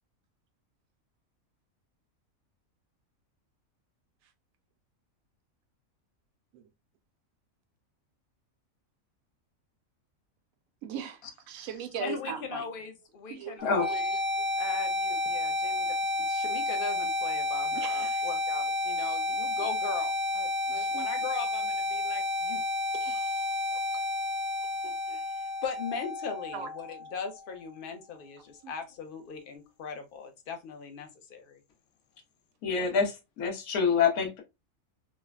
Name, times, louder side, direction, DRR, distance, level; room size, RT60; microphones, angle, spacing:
voice 1, 10.8-11.2 11.5-12.6 13.3-13.6 13.9-14.0 17.7-18.2 20.7-21.1 23.0-23.5 24.8-24.9 26.5-26.7 28.6-28.7, right 7 dB, 75° right, 1.0 m, -39 dB
voice 2, 12.0-14.2 14.6-22.6 23.7-23.8 25.1-31.6, left 5 dB, 55° left, 0.6 m, -40 dB
sound 1, 13.6-27.6, left 2 dB, 50° right, 0.4 m, -31 dB
voice 3, 32.6-34.4, left 6 dB, 85° left, 1.2 m, -26 dB
3.2 x 2.1 x 2.3 m
omnidirectional pair, 1.4 m